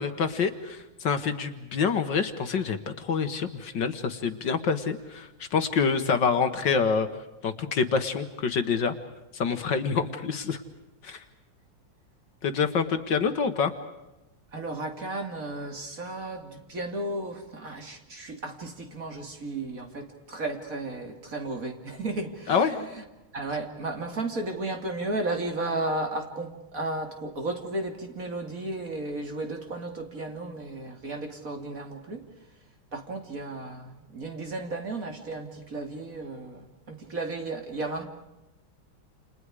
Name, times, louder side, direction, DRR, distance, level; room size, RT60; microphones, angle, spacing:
voice 1, 0.0-7.1 7.4-9.0 9.3-10.6 11.0-11.2 12.4-13.7 22.5-22.8, left 5 dB, 60° left, 8 dB, 1.9 m, -26 dB
voice 2, 14.5-23.0 23.3-32.3 32.9-38.1, right 2 dB, 40° right, 4 dB, 2.8 m, -34 dB
29.5 x 28.5 x 4.9 m, 1.0 s
omnidirectional pair, 2.3 m